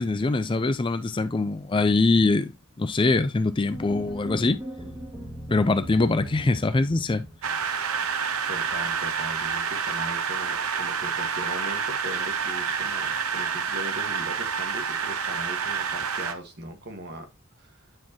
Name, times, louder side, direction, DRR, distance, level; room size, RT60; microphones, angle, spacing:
voice 1, 0.0-2.5 2.8-4.6 5.5-7.3, left 3 dB, 25° left, 0.4 m, -23 dB
sound 1, 3.7-8.0, equal, 15° right, 2.4 m, -39 dB
sound 2, 7.4-16.3, right 6 dB, 80° right, 0.9 m, -28 dB
voice 2, 8.5-17.3 17.6-17.9, equal, 50° right, 1.6 m, -40 dB
9.4 x 4.7 x 2.9 m
head